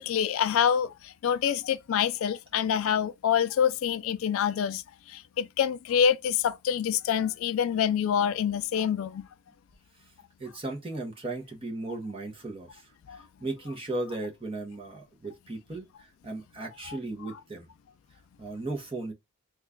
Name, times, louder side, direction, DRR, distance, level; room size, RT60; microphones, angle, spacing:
voice 1, 0.0-9.3 13.1-13.2 16.9-17.0, left 8 dB, 75° left, 0.3 m, -26 dB
voice 2, 10.4-17.7 18.4-19.1, right 2 dB, 25° right, 0.8 m, -36 dB
3.0 x 2.3 x 3.6 m
head